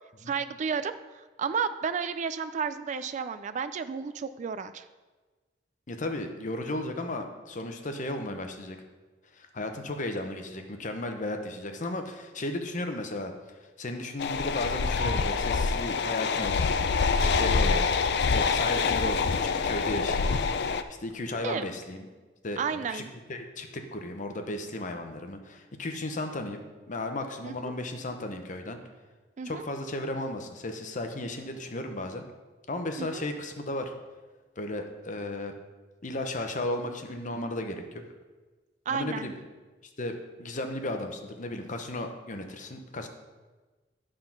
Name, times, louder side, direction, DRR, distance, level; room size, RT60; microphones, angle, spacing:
voice 1, 0.3-0.9 1.4-4.8 21.4-21.6 22.6-23.1 27.4-27.7 29.4-29.6 33.0-33.2 38.9-39.3, right 6 dB, 40° right, 12 dB, 0.3 m, -32 dB
voice 2, 5.9-8.8 9.3-16.7 17.1-17.9 18.3-20.3 21.0-22.1 22.4-28.8 29.4-32.2 32.7-33.9 34.6-35.6 36.0-38.0 38.9-39.3 40.0-43.1, left 1 dB, 45° left, 5 dB, 0.8 m, -35 dB
sound 1, 14.2-20.8, left 5 dB, 65° left, 0.4 m, -26 dB
11.0 x 3.8 x 5.9 m, 1.3 s
head